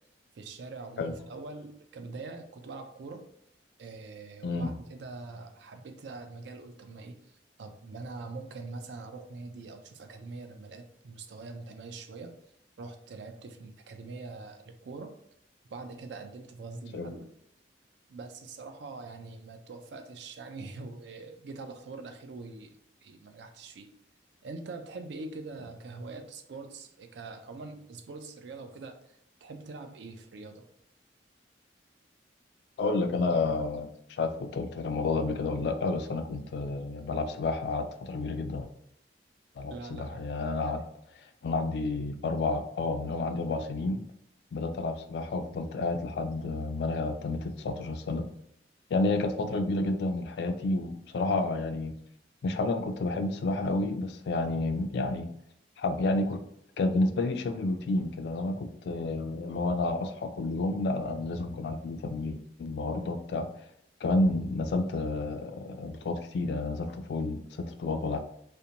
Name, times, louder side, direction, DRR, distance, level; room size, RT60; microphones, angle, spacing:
voice 1, 0.3-3.2 3.8-12.3 12.8-15.1 15.7-17.3 18.1-22.7 23.0-23.9 24.4-29.0 29.4-30.6 39.7-40.3 40.7-40.8, right 3 dB, 75° right, 6 dB, 0.4 m, -43 dB
voice 2, 32.8-38.7 39.6-40.8 41.4-44.0 44.5-48.2 48.9-51.9 52.4-55.3 55.8-56.4 56.8-63.5 64.0-68.2, left 2 dB, 65° left, 7 dB, 0.3 m, -30 dB
2.6 x 2.1 x 2.8 m, 0.71 s
head